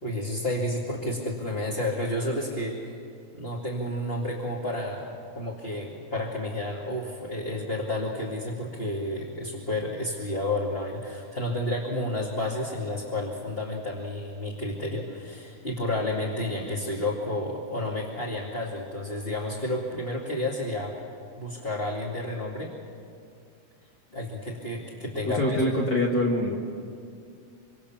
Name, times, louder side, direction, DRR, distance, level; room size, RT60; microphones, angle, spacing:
voice 1, 0.0-2.9 3.3-21.0 21.4-22.8 24.1-25.6, left 1 dB, 20° left, -3 dB, 2.2 m, -31 dB
voice 2, 25.2-26.6, left 1 dB, 40° left, -1 dB, 2.2 m, -24 dB
25.5 x 25.0 x 7.3 m, 2.4 s
omnidirectional pair, 3.5 m